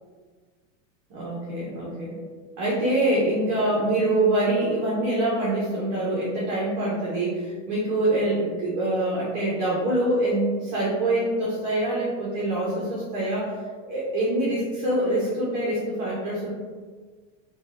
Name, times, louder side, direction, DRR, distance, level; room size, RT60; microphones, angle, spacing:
voice 1, 1.1-2.2 2.6-13.5 13.9-16.5, right 1 dB, 30° right, -6 dB, 0.3 m, -25 dB
3.5 x 2.0 x 2.4 m, 1.5 s
supercardioid pair, 165°, 40 cm